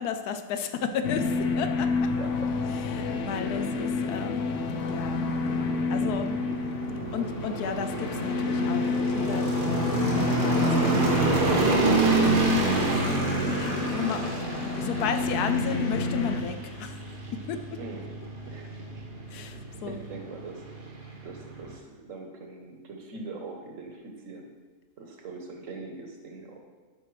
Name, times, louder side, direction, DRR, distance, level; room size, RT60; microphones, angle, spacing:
voice 1, 0.0-2.1 2.9-4.4 4.9-5.3 5.9-6.4 7.1-12.3 13.4-14.4 14.7-17.0 17.3-17.8 19.3-20.0, left 7 dB, 80° left, 8 dB, 1.1 m, -34 dB
sound 1, 1.0-16.4, left 4 dB, 65° left, 0.8 m, -29 dB
voice 2, 2.1-2.5 3.8-4.4 17.8-18.2 18.5-18.9 19.6-20.6 21.2-24.5 25.0-26.6, right 3 dB, 60° right, 2 dB, 1.3 m, -42 dB
sound 2, 2.4-21.8, right 3 dB, 85° right, 1.8 m, -29 dB
11.0 x 5.3 x 3.2 m, 1.4 s
omnidirectional pair, 1.7 m